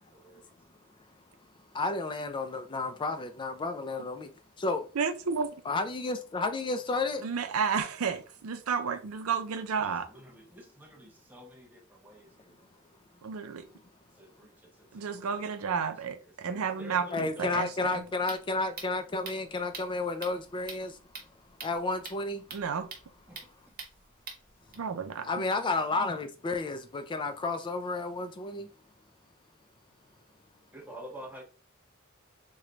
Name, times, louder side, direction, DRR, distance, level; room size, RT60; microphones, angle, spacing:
voice 1, 0.1-0.5 9.8-12.6 14.2-15.8 16.4-17.6 23.3-23.5 30.7-31.4, equal, 10° right, 0.8 m, -49 dB
voice 2, 1.7-4.3 4.6-4.9 5.7-7.2 17.1-21.0 21.6-22.4 25.2-28.7, left 3 dB, 25° left, 0.3 m, -31 dB
voice 3, 5.0-5.5 7.2-10.1 13.2-13.6 14.9-18.1 22.5-22.9 24.7-25.4, right 6 dB, 90° right, 0.5 m, -32 dB
sound 1, 17.8-24.7, right 4 dB, 45° right, 0.9 m, -46 dB
3.1 x 2.2 x 3.8 m
head